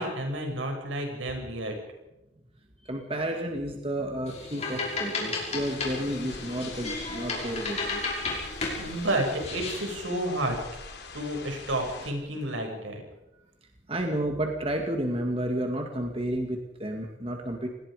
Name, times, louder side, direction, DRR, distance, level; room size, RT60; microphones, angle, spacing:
voice 1, 0.0-1.7 8.8-10.6 11.1-13.0, right 1 dB, 80° right, 2 dB, 6.9 m, -30 dB
voice 2, 2.8-8.0 13.9-17.7, right 1 dB, 30° right, 3 dB, 2.2 m, -31 dB
sound 1, 4.3-10.0, left 3 dB, 35° left, 5.8 m, -34 dB
sound 2, 5.6-12.1, left 4 dB, 55° left, 3.7 m, -44 dB
28.5 x 20.0 x 5.1 m, 0.92 s
head